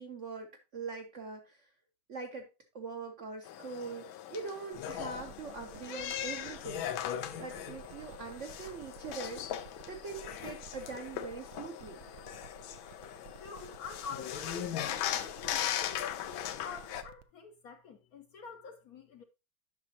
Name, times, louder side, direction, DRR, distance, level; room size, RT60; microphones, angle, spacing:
voice 1, 0.0-1.7 2.1-6.9 7.4-12.0, right 4 dB, 55° right, 0.8 m, -43 dB
sound 1, 3.4-17.0, left 11 dB, 90° left, 1.5 m, -39 dB
sound 2, 4.7-17.2, right 8 dB, 80° right, 1.4 m, -54 dB
voice 2, 13.3-19.2, left 5 dB, 65° left, 1.0 m, -47 dB
9.5 x 6.0 x 2.8 m
omnidirectional pair, 2.1 m